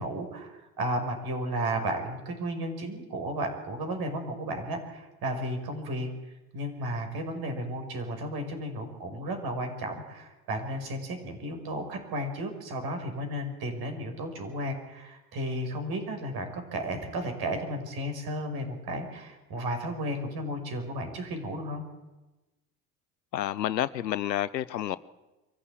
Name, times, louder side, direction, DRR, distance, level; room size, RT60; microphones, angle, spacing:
voice 1, 0.0-6.1 6.5-21.8, right 1 dB, 50° right, 5.4 m, -33 dB
voice 2, 23.3-25.0, left 12 dB, 90° left, 0.7 m, -29 dB
24.0 x 15.0 x 8.2 m
hypercardioid pair, 70°, 48 cm